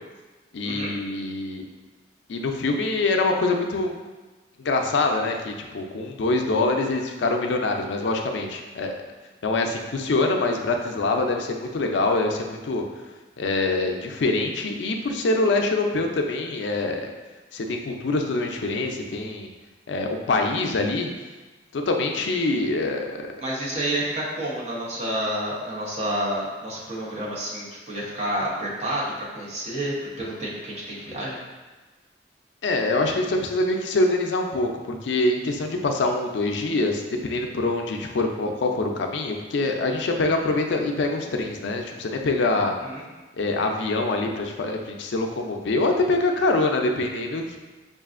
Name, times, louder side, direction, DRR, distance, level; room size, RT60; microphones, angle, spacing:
voice 1, 0.5-1.7 2.3-3.9 4.6-8.9 9.4-12.8 13.4-17.1 17.5-19.5 19.9-21.1 21.7-23.3 32.6-42.7 43.4-47.6, left 2 dB, 75° left, 3 dB, 0.4 m, -24 dB
voice 2, 23.4-31.4 42.8-43.0, right 1 dB, 35° right, -5 dB, 0.8 m, -29 dB
5.4 x 2.5 x 2.4 m, 1.2 s
head